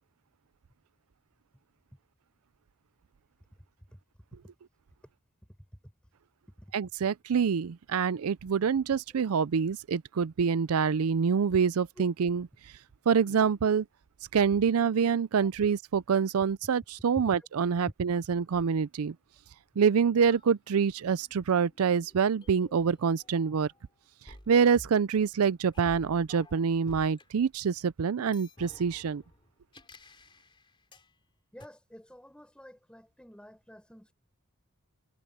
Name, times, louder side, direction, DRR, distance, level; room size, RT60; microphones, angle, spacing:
voice 1, 6.7-12.4 13.1-13.9 14.3-19.1 19.8-23.7 24.5-29.2, right 6 dB, 80° right, 0.4 m, -26 dB
sound 1, 20.3-23.8 24.3-27.3 28.2-31.1 31.6-31.7, left 1 dB, 25° left, 3.4 m, -53 dB
voice 2, 31.5-34.1, equal, 5° left, 5.5 m, -51 dB
head